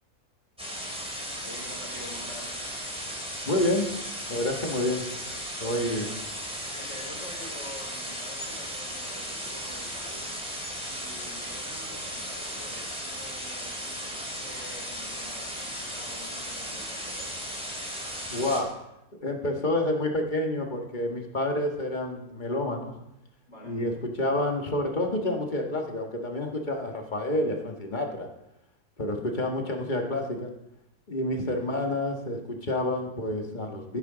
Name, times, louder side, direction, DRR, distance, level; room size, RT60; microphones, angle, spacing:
sound 1, 0.6-18.6, equal, 5° right, 2.6 m, -36 dB
voice 1, 1.4-2.6 5.6-6.1 6.7-10.2 10.8-17.5 23.5-23.8, left 1 dB, 60° left, -2 dB, 4.7 m, -46 dB
voice 2, 3.5-3.9 4.3-5.0 5.6-6.1 18.3-18.7 19.1-22.9 23.6-28.3 29.0-30.5 31.1-34.0, left 1 dB, 35° left, 2 dB, 1.6 m, -28 dB
14.5 x 10.0 x 3.9 m, 0.84 s
omnidirectional pair, 1.5 m